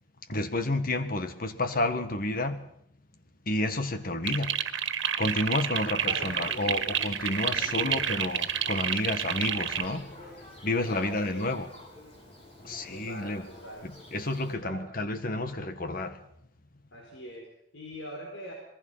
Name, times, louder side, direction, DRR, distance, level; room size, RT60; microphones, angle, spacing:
voice 1, 0.3-2.6 3.5-4.6 5.2-10.1 10.6-11.7 12.6-13.4 13.8-16.2, left 2 dB, 50° left, 9 dB, 1.7 m, -30 dB
sound 1, 4.2-9.9, right 9 dB, 80° right, 1.7 m, -29 dB
voice 2, 6.0-7.2 7.6-8.1 10.9-11.5 12.9-13.9 14.5-14.9 16.9-18.5, equal, 75° left, 1 dB, 4.4 m, -42 dB
Thunder, 6.0-14.5, left 1 dB, 30° left, 5.7 m, -49 dB
27.0 x 21.0 x 5.7 m, 0.71 s
head